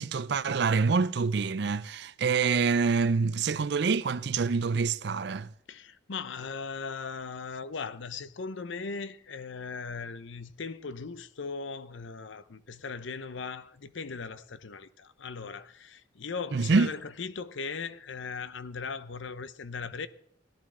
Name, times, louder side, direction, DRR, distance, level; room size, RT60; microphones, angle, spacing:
voice 1, 0.0-5.5 16.5-16.9, right 5 dB, 55° right, 0.4 m, -26 dB
voice 2, 5.7-20.1, left 5 dB, 70° left, 0.7 m, -38 dB
17.0 x 12.0 x 3.8 m
head